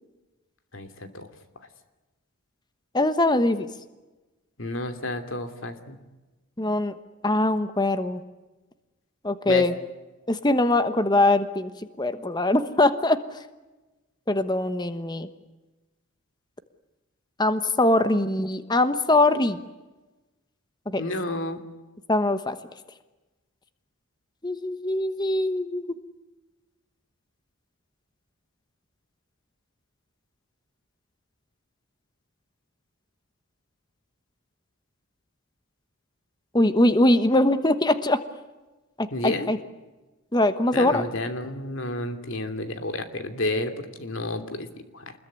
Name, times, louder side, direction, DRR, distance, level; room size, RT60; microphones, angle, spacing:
voice 1, 0.7-1.3 1.6-1.7 4.6-6.0 9.5-9.7 21.0-21.6 39.1-39.5 40.7-45.1, left 2 dB, 60° left, 8 dB, 2.8 m, -31 dB
voice 2, 2.9-3.7 6.6-6.9 7.2-8.2 9.2-9.7 10.3-11.7 12.0-13.2 14.3-15.3 17.4-19.6 20.9-21.0 22.1-22.6 24.4-25.9 36.5-38.2 39.0-39.6 40.3-41.0, left 2 dB, 20° left, 11 dB, 1.1 m, -22 dB
27.0 x 21.5 x 9.5 m, 1.1 s
head